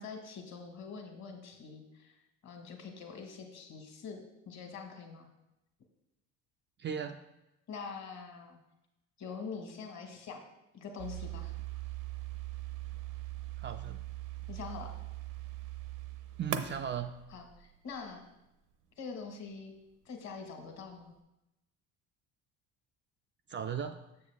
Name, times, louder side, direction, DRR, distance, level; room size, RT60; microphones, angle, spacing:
voice 1, 0.0-2.1 2.4-4.2 4.5-5.3 7.7-8.6 9.2-10.4 10.7-11.5 14.5-14.9 17.3-18.3 19.0-19.7 20.0-21.1, left 5 dB, 50° left, 3 dB, 1.7 m, -44 dB
voice 2, 6.8-7.2 13.6-14.0 16.4-17.1 23.5-24.0, right 7 dB, 35° right, 7 dB, 0.4 m, -36 dB
sound 1, 11.0-18.0, right 12 dB, 60° right, 0.7 m, -41 dB
6.7 x 6.7 x 3.5 m, 0.92 s
supercardioid pair, 90°, 35 cm